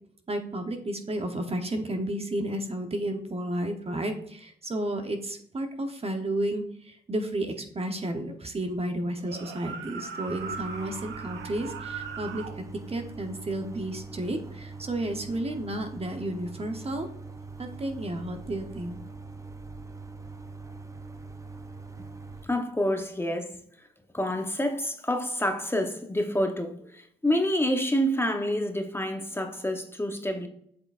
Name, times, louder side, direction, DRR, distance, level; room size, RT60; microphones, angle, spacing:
voice 1, 0.3-17.1 17.6-19.0, right 1 dB, 35° right, 0.9 m, -32 dB
sound 1, 9.2-12.6, right 6 dB, 85° right, 0.7 m, -39 dB
sound 2, 10.3-22.5, right 3 dB, 15° right, 0.6 m, -43 dB
voice 2, 22.4-23.6 24.1-30.5, equal, 10° left, 1.0 m, -28 dB
7.6 x 5.7 x 2.5 m
supercardioid pair, 60°, 19 cm